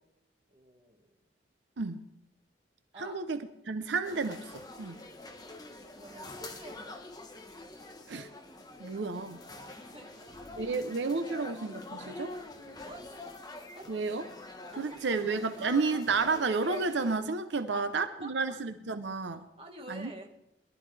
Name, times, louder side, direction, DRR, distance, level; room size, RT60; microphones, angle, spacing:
voice 1, 0.5-1.1 2.9-3.2 6.0-7.0 8.9-9.0 9.7-10.3 12.8-13.0 13.8-13.9 17.7-18.3 19.6-20.3, right 1 dB, 30° right, 1 dB, 1.8 m, -47 dB
voice 2, 3.0-3.4 3.7-5.0 8.1-8.3 8.8-9.4 10.6-12.4 13.9-14.2 14.8-19.5 19.9-20.1, right 4 dB, 85° right, 9 dB, 0.7 m, -31 dB
sound 1, 4.0-17.2, left 2 dB, 20° left, 1.2 m, -46 dB
21.5 x 12.5 x 3.4 m, 0.85 s
head